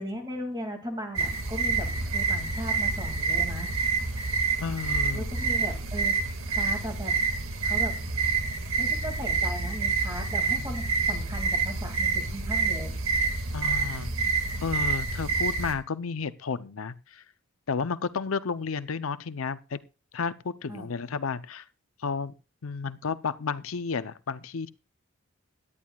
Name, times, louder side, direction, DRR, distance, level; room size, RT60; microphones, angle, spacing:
voice 1, 0.0-3.7 5.1-6.2 6.5-7.2 7.6-8.0 8.8-12.9 20.7-20.9, equal, 20° right, 2.3 m, -37 dB
sound 1, 1.2-15.7, right 4 dB, 80° right, 2.0 m, -28 dB
voice 2, 4.6-5.2 10.5-10.7 13.5-14.1 14.6-17.2 17.7-19.8 20.1-21.6 22.0-22.3 22.6-24.7, left 5 dB, 80° left, 0.6 m, -32 dB
17.0 x 11.0 x 2.3 m
head